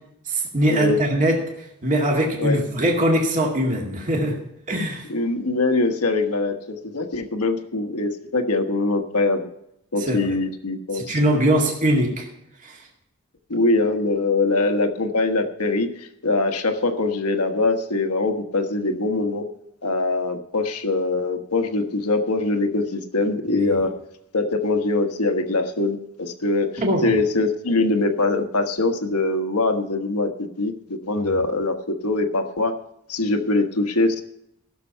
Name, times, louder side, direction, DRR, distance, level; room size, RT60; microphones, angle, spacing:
voice 1, 0.3-1.4 1.8-4.4 4.7-5.1 10.0-10.3 10.9-12.3 12.6-12.8 23.5-23.7 26.8-27.1 31.2-31.3, right 1 dB, 35° right, -1 dB, 2.2 m, -21 dB
voice 2, 5.1-9.4 9.9-11.2 13.5-19.4 19.8-23.9 24.3-26.7 27.0-31.8 32.0-32.7 33.1-34.2, left 2 dB, 85° left, 6 dB, 1.3 m, -23 dB
16.0 x 6.9 x 5.7 m, 0.79 s
head